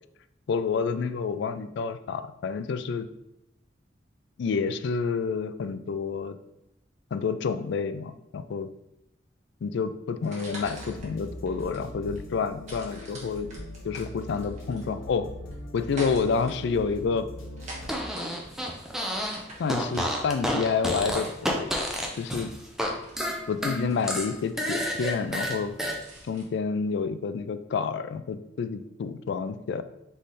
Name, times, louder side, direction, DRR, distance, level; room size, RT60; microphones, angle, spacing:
voice 1, 0.5-3.1 4.4-6.4 7.1-8.7 9.6-13.5 13.8-15.3 15.7-17.3 19.6-21.7 22.2-22.5 23.5-25.8 26.2-29.8, left 5 dB, 60° left, 11 dB, 0.3 m, -29 dB
sound 1, 10.1-26.4, right 1 dB, 40° right, 1.2 m, -47 dB
sound 2, 10.6-18.0, left 1 dB, 85° left, 1.1 m, -41 dB
Fart, 17.8-19.4 19.7-22.9 23.2-26.0, equal, ahead, 0.5 m, -29 dB
3.7 x 3.2 x 4.0 m, 0.84 s
head